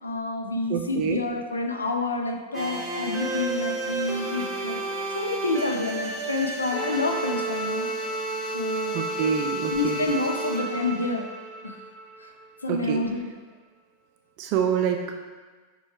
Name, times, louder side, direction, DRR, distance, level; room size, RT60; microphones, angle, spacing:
voice 1, 0.0-4.8 5.1-7.9 8.5-9.0 9.7-11.3 11.6-11.8 12.2-12.3 12.6-13.3, left 2 dB, 75° left, 3 dB, 0.5 m, -28 dB
voice 2, 0.7-1.2 8.9-10.1 12.7-13.0 14.4-15.1, right 7 dB, 45° right, 4 dB, 0.3 m, -26 dB
sound 1, 2.5-12.4, right 2 dB, 15° right, 0.9 m, -31 dB
6.8 x 2.3 x 3.2 m, 1.4 s
figure-of-eight pair, 90°, 0 cm